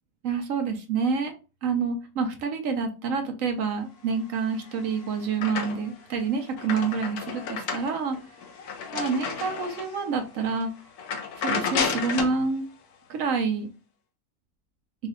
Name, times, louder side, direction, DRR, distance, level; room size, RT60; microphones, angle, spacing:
voice 1, 0.2-1.3 1.6-8.2 8.9-10.7 11.4-12.6 13.1-13.7, right 5 dB, 60° right, 5 dB, 1.0 m, -27 dB
sound 1, 4.5-6.0 6.4-10.0 10.5-10.6 11.0-12.4, left 6 dB, 65° left, 1.2 m, -32 dB
4.0 x 2.3 x 4.2 m, 0.32 s
omnidirectional pair, 1.8 m